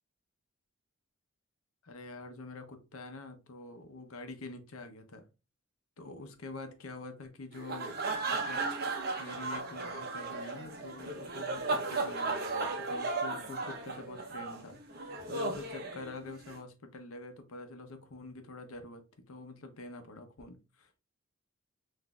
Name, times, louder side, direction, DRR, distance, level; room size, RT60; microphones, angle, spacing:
voice 1, 1.8-5.3 6.0-8.0 8.3-8.7 9.2-19.0 19.3-21.0, left 2 dB, 80° left, 0.7 m, -46 dB
sound 1, 7.5-16.6, right 3 dB, 45° right, 0.7 m, -35 dB
6.0 x 2.6 x 2.2 m
head